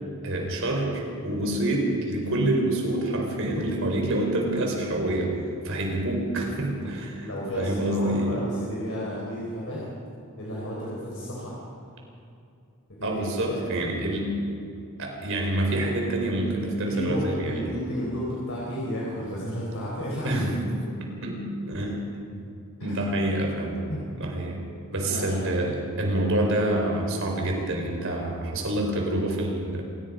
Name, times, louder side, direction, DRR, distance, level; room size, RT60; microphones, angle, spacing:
voice 1, 0.2-5.4 5.6-7.3 7.6-8.4 13.0-14.4 15.0-17.7 20.2-20.8 21.2-22.0 22.3-22.4 22.8-23.9 24.2-24.6 24.9-29.8, right 1 dB, 60° right, 1 dB, 4.8 m, -27 dB
voice 2, 7.1-9.9 10.4-11.6 12.9-13.2 13.6-13.7 16.9-20.4 22.8-23.0 23.9-24.1 25.0-25.4, equal, 60° left, -5 dB, 4.7 m, -32 dB
27.5 x 17.5 x 5.3 m, 2.6 s
head